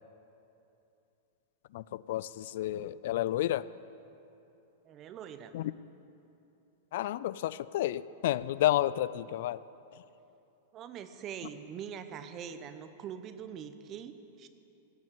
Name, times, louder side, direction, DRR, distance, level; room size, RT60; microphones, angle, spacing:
voice 1, 1.7-3.7 5.5-5.7 6.9-9.6, left 13 dB, 65° left, 18 dB, 0.3 m, -31 dB
voice 2, 4.8-5.5 10.7-14.5, right 8 dB, 35° right, 10 dB, 0.9 m, -43 dB
16.0 x 6.4 x 8.5 m, 2.8 s
hypercardioid pair, 125°, 0 cm